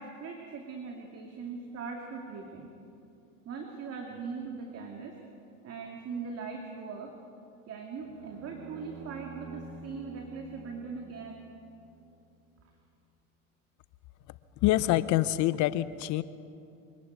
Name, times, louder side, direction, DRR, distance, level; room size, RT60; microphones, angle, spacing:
voice 1, 0.0-2.7 3.5-5.2 5.6-7.2 7.7-11.4, right 5 dB, 35° right, 2 dB, 2.4 m, -40 dB
sound 1, 8.0-12.2, right 3 dB, 65° right, 2.5 m, -48 dB
voice 2, 14.6-16.2, left 15 dB, 45° left, 16 dB, 0.7 m, -26 dB
25.5 x 11.0 x 9.3 m, 2.6 s
supercardioid pair, 110°, 43 cm